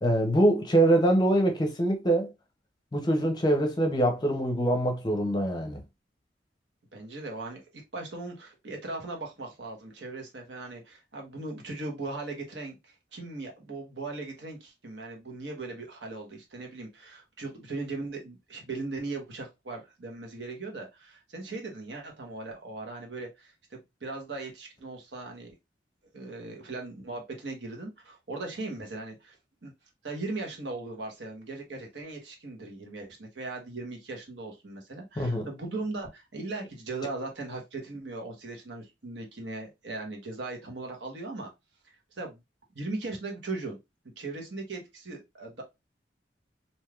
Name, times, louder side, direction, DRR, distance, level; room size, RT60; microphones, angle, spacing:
voice 1, 0.0-2.3 2.9-5.8 35.2-35.5, right 1 dB, 25° left, 0.6 m, -24 dB
voice 2, 6.9-25.5 26.1-29.4 29.6-29.7 30.0-41.5 42.1-42.4 42.7-43.8 44.2-45.6, right 3 dB, 85° right, 1.1 m, -38 dB
3.3 x 2.6 x 2.3 m
head